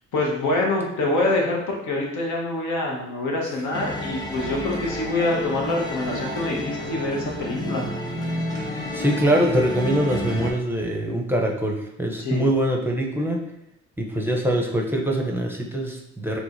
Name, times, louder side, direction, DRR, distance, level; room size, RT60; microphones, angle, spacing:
voice 1, 0.1-7.9 12.2-12.5, left 2 dB, 80° left, -1 dB, 1.2 m, -25 dB
sound 1, 3.7-10.5, left 1 dB, 15° left, 0.9 m, -30 dB
voice 2, 8.9-13.4 14.0-16.4, right 1 dB, 5° right, 0 dB, 0.6 m, -23 dB
4.8 x 3.2 x 2.6 m, 0.81 s
cardioid pair, 90°, 30 cm